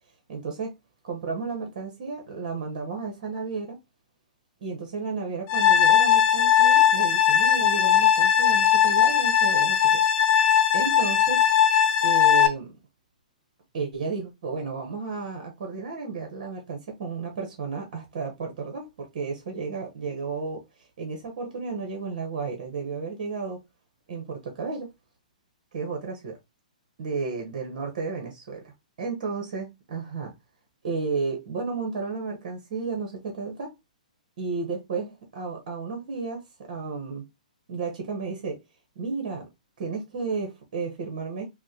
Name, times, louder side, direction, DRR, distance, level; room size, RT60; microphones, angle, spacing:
voice 1, 0.3-0.7 1.0-3.8 4.6-10.0 10.7-11.5 12.0-12.8 13.7-23.6 24.1-24.9 25.7-26.4 27.0-28.6 29.0-30.3 30.8-33.7 34.4-37.3 37.7-38.6 38.9-39.5 39.8-41.5, right 4 dB, 60° right, 1.1 m, -33 dB
sound 1, 5.5-12.5, left 9 dB, 35° left, 0.9 m, -19 dB
6.1 x 2.2 x 2.9 m
hypercardioid pair, 130°, 4 cm